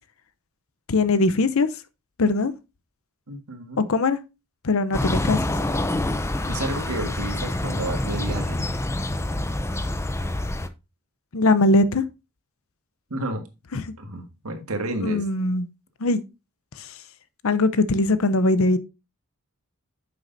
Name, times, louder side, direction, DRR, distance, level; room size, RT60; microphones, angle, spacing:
voice 1, 0.9-1.7 2.2-2.5 3.8-4.2 4.6-5.5 11.3-12.0 13.7-13.8 15.0-15.7 16.0-16.2 16.8-16.9 17.4-18.8, left 2 dB, 65° left, 0.7 m, -21 dB
voice 2, 3.3-3.9 6.5-8.6 13.1-13.4 14.0-15.2, right 1 dB, 75° right, 1.7 m, -31 dB
sound 1, 4.9-10.7, left 1 dB, 10° left, 0.5 m, -26 dB
9.3 x 6.6 x 2.6 m
head